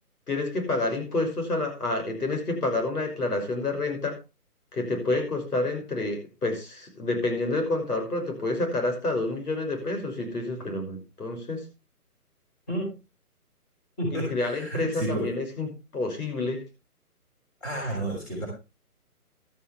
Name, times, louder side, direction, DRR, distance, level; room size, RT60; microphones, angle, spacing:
voice 1, 0.3-4.2 4.7-11.6 14.3-16.6, left 2 dB, 75° left, 4 dB, 6.1 m, -28 dB
voice 2, 14.0-15.3 17.6-18.5, right 1 dB, 10° left, -4 dB, 3.5 m, -30 dB
13.0 x 13.0 x 3.3 m, 0.28 s
hypercardioid pair, 180°, 46 cm